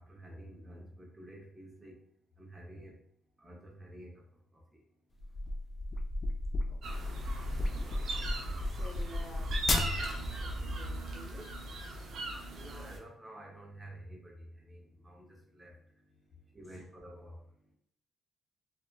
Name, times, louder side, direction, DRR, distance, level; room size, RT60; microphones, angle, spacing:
voice 1, 0.0-2.0 2.4-2.9 3.4-4.3 4.5-4.8 12.0-17.8, right 1 dB, 20° right, -1 dB, 0.8 m, -51 dB
sound 1, 5.2-10.4, left 2 dB, 40° left, 0.3 m, -34 dB
voice 2, 6.7-7.9 8.3-11.5 16.6-16.8, left 1 dB, 15° left, -2 dB, 0.9 m, -51 dB
sound 2, 6.8-13.0, right 1 dB, 70° right, 0.5 m, -38 dB
2.9 x 2.1 x 2.3 m, 0.66 s
cardioid pair, 90°, 0 cm